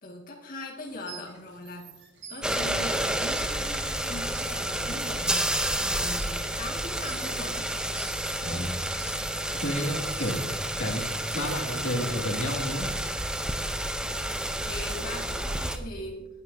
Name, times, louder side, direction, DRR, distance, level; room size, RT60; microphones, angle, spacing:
voice 1, 0.0-1.9 2.3-7.7 14.6-16.3, left 1 dB, 45° left, -2 dB, 2.0 m, -40 dB
sound 1, 0.9-12.2, right 6 dB, 60° right, 1.8 m, -49 dB
sound 2, 2.4-15.8, right 1 dB, 5° right, 0.6 m, -30 dB
voice 2, 9.6-10.4 10.8-11.1 11.3-12.9, equal, 75° left, 0 dB, 2.2 m, -30 dB
20.0 x 9.6 x 2.7 m, 1.1 s
head